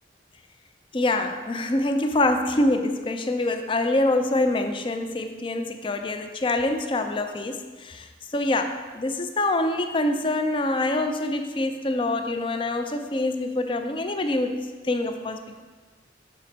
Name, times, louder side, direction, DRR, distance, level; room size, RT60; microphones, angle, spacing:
voice 1, 0.9-15.6, left 2 dB, 25° left, 7 dB, 0.4 m, -25 dB
6.3 x 4.1 x 5.9 m, 1.4 s
head